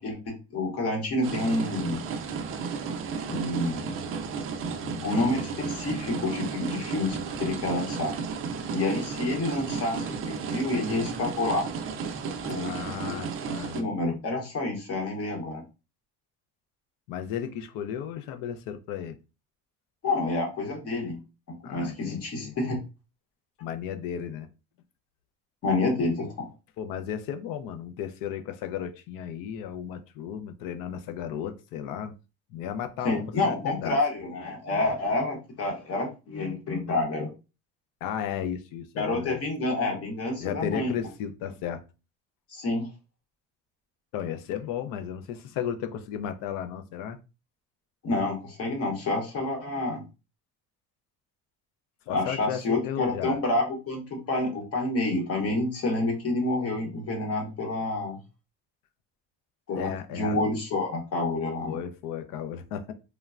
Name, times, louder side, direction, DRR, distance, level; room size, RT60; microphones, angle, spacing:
voice 1, 0.0-2.0 3.3-3.9 5.0-8.1 8.7-11.7 12.4-13.2 13.7-15.6 20.0-21.2 21.7-22.8 25.6-26.5 33.0-37.3 39.0-40.9 42.5-42.9 48.0-50.0 52.1-58.2 59.7-61.8, left 2 dB, 45° left, 0.9 m, -28 dB
sound 1, 1.2-13.8, right 5 dB, 40° right, 0.4 m, -33 dB
voice 2, 4.8-5.3 12.5-13.8 17.1-19.2 21.6-22.5 23.6-24.5 26.8-32.1 32.5-34.0 38.0-39.4 40.4-41.8 44.1-47.2 52.1-53.4 59.8-60.4 61.6-62.9, left 9 dB, 75° left, 0.5 m, -34 dB
3.1 x 2.1 x 2.4 m
cardioid pair, 150°, 34 cm